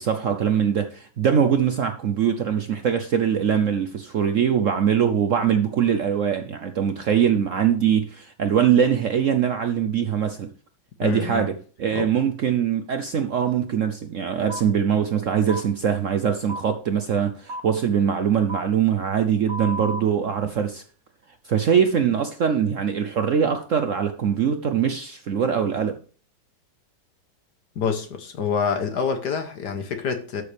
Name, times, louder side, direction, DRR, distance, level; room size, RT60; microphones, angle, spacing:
voice 1, 0.0-10.5 11.0-20.8 21.4-26.0, right 8 dB, 70° right, 0.7 m, -22 dB
voice 2, 11.0-11.5 11.9-12.1 27.7-30.4, left 6 dB, 60° left, 1.6 m, -27 dB
sound 1, 14.5-14.6 15.5-15.6 16.5-16.6 17.5-17.6 18.5-18.6 19.5-20.0, equal, 50° right, 1.9 m, -32 dB
12.5 x 6.8 x 3.4 m
omnidirectional pair, 2.2 m